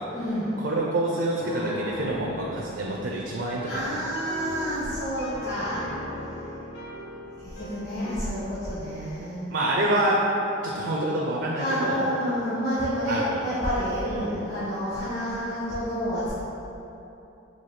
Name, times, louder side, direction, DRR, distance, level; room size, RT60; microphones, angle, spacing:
voice 1, 0.1-0.5 3.6-5.9 7.4-9.5 11.5-16.3, equal, 40° left, -15 dB, 1.4 m, -29 dB
voice 2, 0.6-3.8 9.5-10.3 10.6-12.0 13.1-13.4 14.1-14.5, right 1 dB, 65° right, -3 dB, 0.4 m, -27 dB
Piano, 1.4-8.3, left 1 dB, 60° left, 0.7 m, -38 dB
5.6 x 2.5 x 3.2 m, 2.9 s
head